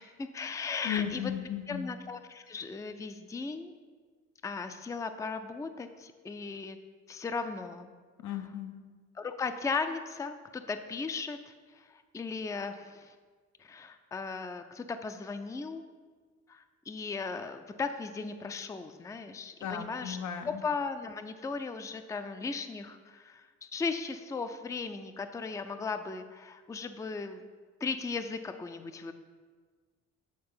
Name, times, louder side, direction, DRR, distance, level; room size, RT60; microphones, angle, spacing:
voice 1, 0.0-1.3 1.7-3.7 4.4-6.8 7.1-7.9 8.3-8.5 9.1-13.1 13.6-15.8 16.5-20.2 20.5-27.4 27.8-29.1, left 4 dB, 10° left, 9 dB, 0.4 m, -37 dB
voice 2, 0.8-1.9 8.2-8.8 19.6-20.6, left 9 dB, 75° left, 7 dB, 0.7 m, -35 dB
8.8 x 3.8 x 5.5 m, 1.5 s
cardioid pair, 90°, 30 cm